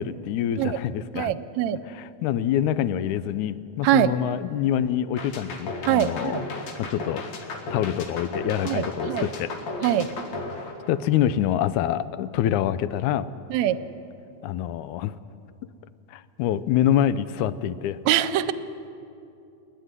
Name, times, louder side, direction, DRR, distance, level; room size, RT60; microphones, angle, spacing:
voice 1, 0.0-1.3 1.9-6.3 6.8-7.3 7.7-9.5 10.9-13.3 14.4-15.2 16.1-18.0, left 10 dB, 85° left, 15 dB, 2.1 m, -26 dB
voice 2, 1.1-1.8 3.8-4.1 5.9-6.4 8.7-9.3 9.8-10.1 13.5-13.8 18.1-18.5, right 12 dB, 75° right, 14 dB, 1.9 m, -23 dB
sound 1, 5.2-11.4, left 3 dB, 70° left, 2.9 m, -34 dB
30.0 x 10.0 x 9.6 m, 2.7 s
omnidirectional pair, 3.4 m